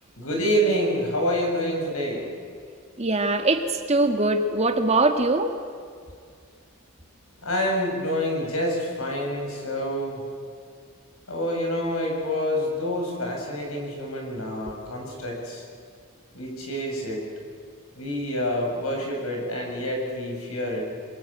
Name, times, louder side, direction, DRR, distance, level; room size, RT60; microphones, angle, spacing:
voice 1, 0.2-2.2 7.4-10.2 11.3-15.6 16.3-17.2 18.0-20.8, equal, 80° left, 0 dB, 7.3 m, -27 dB
voice 2, 3.0-5.6, right 2 dB, 30° right, 6 dB, 1.7 m, -22 dB
26.5 x 22.5 x 8.9 m, 2.2 s
head